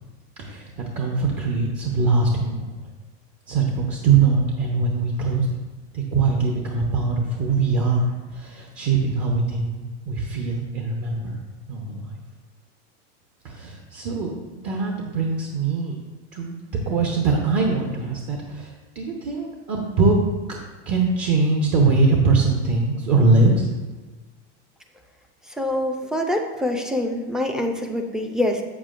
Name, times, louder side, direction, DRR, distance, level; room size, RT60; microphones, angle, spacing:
voice 1, 0.4-2.7 3.5-5.6 5.9-11.4 11.7-12.2 13.4-14.3 14.6-16.0 16.3-16.6 16.9-20.2 20.9-23.7, right 3 dB, 45° right, 0 dB, 0.9 m, -22 dB
voice 2, 25.6-28.6, left 1 dB, ahead, 3 dB, 0.4 m, -25 dB
8.0 x 7.3 x 2.5 m, 1.2 s
supercardioid pair, 130°, 35 cm